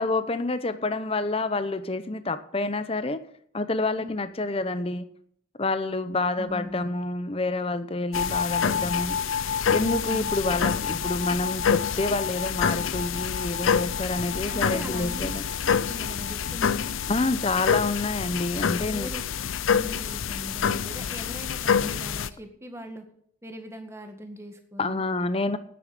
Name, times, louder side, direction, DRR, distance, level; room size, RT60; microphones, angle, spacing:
voice 1, 0.0-3.2 3.5-5.1 5.6-9.2 9.7-15.4 17.1-19.1 24.8-25.6, left 2 dB, 30° left, 12 dB, 0.8 m, -28 dB
voice 2, 6.4-6.9 9.8-10.3 14.5-15.4 15.6-17.0 18.9-19.2 19.7-23.0 23.4-25.0, equal, 15° right, 5 dB, 1.8 m, -40 dB
sound 1, 8.1-22.3, left 7 dB, 80° left, 0.6 m, -27 dB
9.8 x 8.7 x 9.4 m, 0.67 s
head